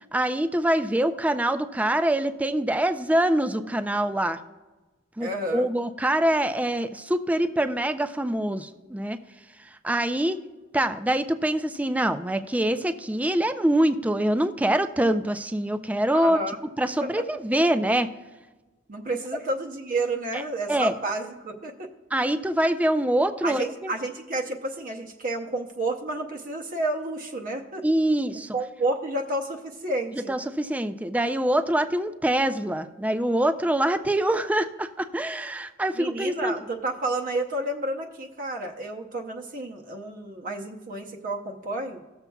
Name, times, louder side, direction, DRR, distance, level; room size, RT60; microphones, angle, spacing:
voice 1, 0.1-4.4 5.2-9.2 9.8-10.4 10.7-16.4 16.8-18.1 20.7-20.9 22.1-23.9 27.8-28.6 30.3-36.5, right 1 dB, 10° right, 9 dB, 0.4 m, -24 dB
voice 2, 5.2-5.7 16.1-16.6 17.0-17.1 18.9-21.9 23.4-27.8 28.5-30.3 35.9-42.0, right 2 dB, 45° right, 1 dB, 0.7 m, -30 dB
17.5 x 7.0 x 2.3 m, 1.2 s
head